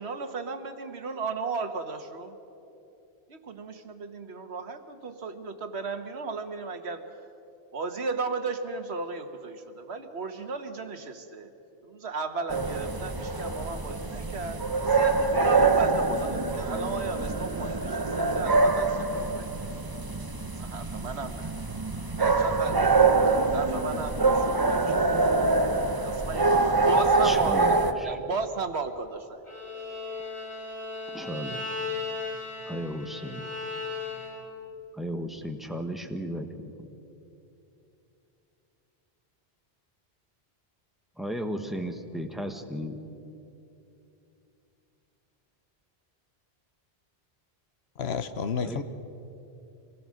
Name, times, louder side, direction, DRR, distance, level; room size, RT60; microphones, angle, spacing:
voice 1, 0.0-2.4 3.3-7.1 7.7-11.5 11.8-19.5 20.6-21.5 22.2-22.9 23.5-25.0 26.0-29.4, right 4 dB, 80° right, 8 dB, 1.5 m, -35 dB
sound 1, 12.5-27.9, right 3 dB, 20° right, 0.8 m, -25 dB
voice 2, 27.2-28.2 31.1-31.8 32.7-33.5 34.9-36.7 41.2-43.0 48.6-48.8, equal, ahead, 5 dB, 1.2 m, -35 dB
Bowed string instrument, 29.4-34.6, left 4 dB, 35° left, 7.0 m, -36 dB
voice 3, 48.0-48.8, left 6 dB, 75° left, 10 dB, 1.2 m, -30 dB
25.5 x 19.0 x 6.4 m, 2.9 s
omnidirectional pair, 1.1 m